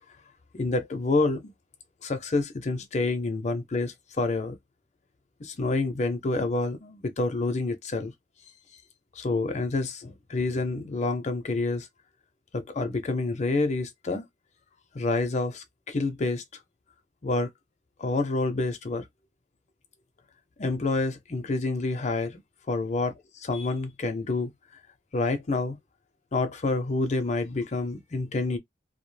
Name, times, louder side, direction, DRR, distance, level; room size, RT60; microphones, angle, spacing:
voice 1, 0.5-1.5 2.0-4.6 5.4-8.1 9.2-11.9 12.5-14.2 14.9-16.4 17.2-17.5 18.0-19.1 20.6-22.4 22.7-23.1 23.4-24.5 25.1-25.8 26.3-28.6, left 3 dB, 40° left, 0.6 m, -28 dB
2.3 x 2.1 x 3.1 m
head